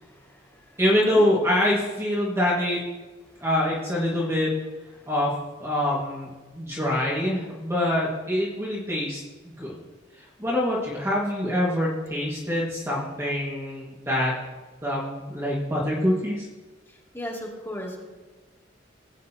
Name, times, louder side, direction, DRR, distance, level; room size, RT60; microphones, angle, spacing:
voice 1, 0.0-1.2 16.9-18.0, equal, 15° left, -4 dB, 2.8 m, -37 dB
voice 2, 0.8-2.8 3.4-4.5 5.1-5.3 5.6-9.8 10.4-14.3 14.8-16.5, left 1 dB, 15° right, -5 dB, 2.0 m, -25 dB
20.0 x 9.2 x 3.0 m, 1.2 s
head